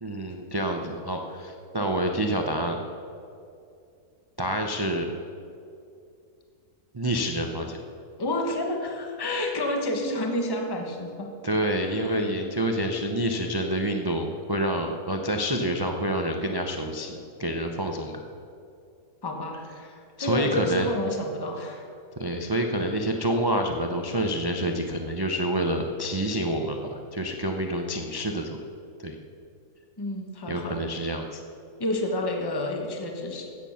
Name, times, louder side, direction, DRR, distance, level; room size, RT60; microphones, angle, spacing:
voice 1, 0.0-2.8 4.4-5.1 6.9-7.8 11.4-18.2 20.2-20.9 22.2-28.6 29.0-29.2 30.5-31.4, right 1 dB, 30° right, 3 dB, 0.4 m, -28 dB
voice 2, 8.2-11.3 11.8-12.2 19.2-21.9 30.0-30.9 31.8-33.5, left 1 dB, 15° left, 2 dB, 1.1 m, -30 dB
13.5 x 9.1 x 5.7 m, 2.5 s
omnidirectional pair, 1.7 m